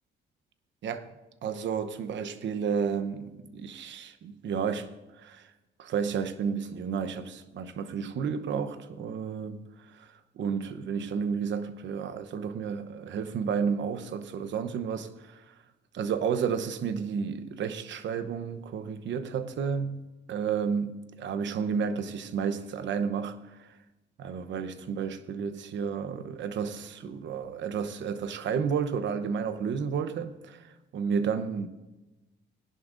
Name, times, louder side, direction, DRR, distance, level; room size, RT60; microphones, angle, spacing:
voice 1, 1.4-4.9 5.2-5.5 5.8-10.1 10.4-15.5 15.9-23.7 24.2-31.7, right 6 dB, 65° right, 0.9 m, -32 dB
19.0 x 11.0 x 2.6 m
cardioid pair, 90°, 20 cm